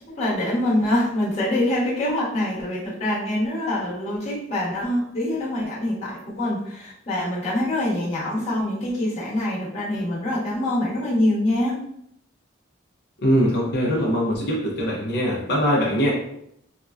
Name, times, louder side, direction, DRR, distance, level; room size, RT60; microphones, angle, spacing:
voice 1, 0.0-11.8, left 1 dB, 35° left, -8 dB, 1.0 m, -25 dB
voice 2, 13.2-16.1, equal, 55° left, -4 dB, 0.6 m, -22 dB
3.6 x 2.1 x 2.3 m, 0.73 s
head